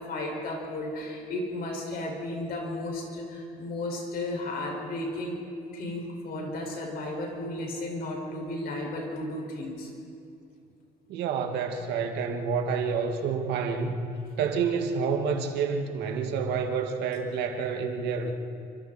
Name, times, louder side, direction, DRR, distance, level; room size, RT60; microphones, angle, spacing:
voice 1, 0.0-5.4 5.7-9.9, left 1 dB, 60° left, 0 dB, 5.8 m, -34 dB
voice 2, 11.1-14.0 14.4-18.3, right 5 dB, 80° right, 4 dB, 2.1 m, -28 dB
28.0 x 25.0 x 4.4 m, 2.6 s
cardioid pair, 110°, 17 cm